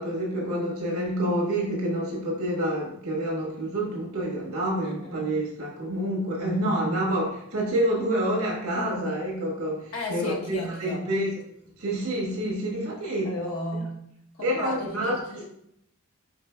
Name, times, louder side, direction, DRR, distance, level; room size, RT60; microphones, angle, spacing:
voice 1, 0.0-11.3 11.8-13.3 14.4-15.2, right 1 dB, 80° right, -2 dB, 1.4 m, -28 dB
voice 2, 4.8-5.3 6.4-7.1 8.7-8.9 9.9-11.1 13.2-14.0 14.4-15.4, equal, 70° left, -2 dB, 1.0 m, -34 dB
5.1 x 3.8 x 2.2 m, 0.75 s
head